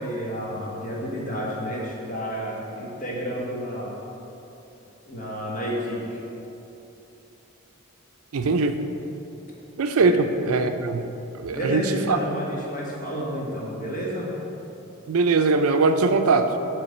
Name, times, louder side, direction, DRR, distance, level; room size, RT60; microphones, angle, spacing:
voice 1, 0.0-4.0 5.0-6.2 10.0-10.2 11.5-14.3, equal, 35° left, -4 dB, 1.4 m, -30 dB
voice 2, 8.3-8.8 9.8-11.0 11.4-12.2 15.1-16.6, right 3 dB, 80° right, 8 dB, 0.5 m, -21 dB
8.6 x 3.4 x 6.6 m, 3.0 s
head